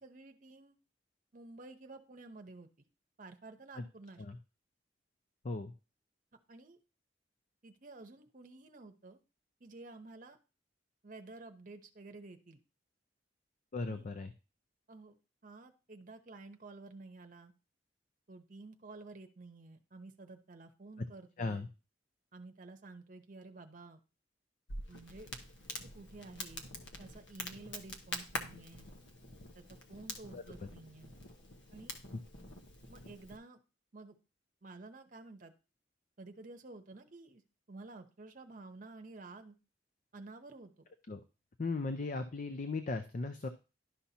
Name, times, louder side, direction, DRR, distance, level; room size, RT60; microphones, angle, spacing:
voice 1, 0.0-0.8 1.3-2.7 3.2-4.2 6.5-6.8 7.6-9.2 9.6-10.4 11.0-12.6 13.9-14.1 14.9-15.2 15.4-17.5 18.3-21.7 22.3-24.0 24.9-25.3 25.8-26.7 27.0-28.9 29.5-31.1 31.7-31.9 32.9-33.6 33.9-34.2 34.6-35.5 36.2-37.4 37.7-39.6 40.1-40.9, right 3 dB, 45° right, 6 dB, 0.8 m, -52 dB
voice 2, 13.7-14.3 21.4-21.7 30.3-30.7 41.1-41.2 41.6-43.5, left 3 dB, 45° left, 9 dB, 0.5 m, -37 dB
Crackle, 24.7-33.4, left 2 dB, 80° left, 1.1 m, -46 dB
11.5 x 5.7 x 2.8 m, 0.32 s
head